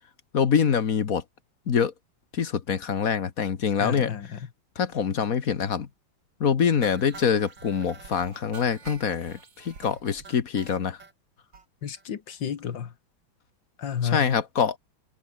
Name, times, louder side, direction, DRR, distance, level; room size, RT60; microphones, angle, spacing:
voice 1, 0.3-1.2 1.7-1.9 2.3-4.1 4.8-5.9 6.4-11.0 14.0-14.7, left 7 dB, 50° left, 1.7 m, -25 dB
voice 2, 3.8-4.5 11.8-12.9 13.8-14.3, left 8 dB, 70° left, 2.3 m, -31 dB
sound 1, 6.8-11.1 11.5-11.6 12.0-12.1 12.3-12.4 12.7-12.8, right 5 dB, 70° right, 3.7 m, -47 dB
omnidirectional pair, 2.1 m